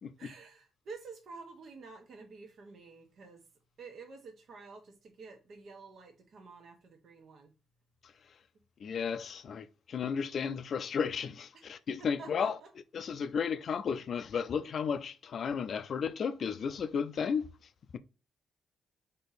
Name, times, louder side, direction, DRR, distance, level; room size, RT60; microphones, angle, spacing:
voice 1, 0.2-3.4 3.8-7.5 11.5-11.6 12.0-12.7, right 4 dB, 60° right, 1.2 m, -50 dB
voice 2, 8.8-12.6 12.9-17.5 17.9-18.0, left 6 dB, 55° left, 0.5 m, -33 dB
4.4 x 2.9 x 4.0 m
cardioid pair, 90°, 0 cm